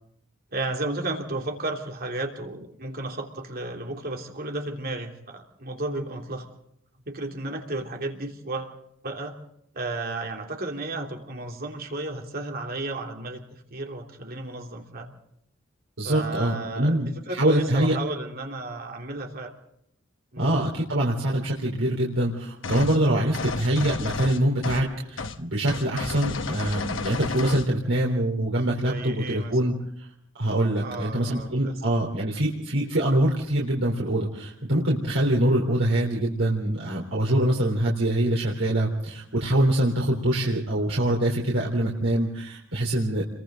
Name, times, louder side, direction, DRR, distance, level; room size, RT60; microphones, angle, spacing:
voice 1, 0.5-6.5 7.1-8.8 9.0-9.3 9.7-13.4 13.7-15.1 16.0-19.5 20.3-20.5 28.8-29.6 30.8-31.7, right 2 dB, 50° right, 2 dB, 3.3 m, -33 dB
voice 2, 16.0-17.9 20.4-29.7 30.4-43.2, right 1 dB, 80° right, -2 dB, 3.8 m, -24 dB
sound 1, 22.6-23.0 23.3-24.9 25.2-25.4 25.7-27.7, left 4 dB, 70° left, 1.2 m, -32 dB
30.0 x 23.0 x 3.9 m, 0.72 s
head